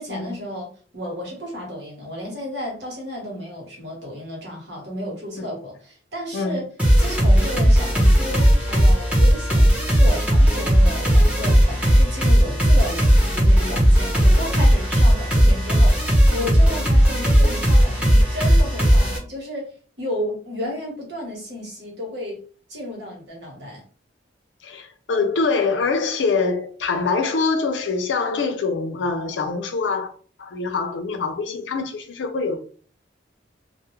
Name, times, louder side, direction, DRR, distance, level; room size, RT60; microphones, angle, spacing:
voice 1, 0.0-6.6 7.0-19.7 20.0-22.4 22.7-23.8, equal, 65° right, 1.1 m, -33 dB
voice 2, 6.3-6.7 24.6-30.1 30.4-32.6, left 4 dB, 75° left, 0.5 m, -24 dB
sound 1, 6.8-19.2, equal, 10° right, 0.7 m, -16 dB
2.3 x 2.1 x 3.0 m
head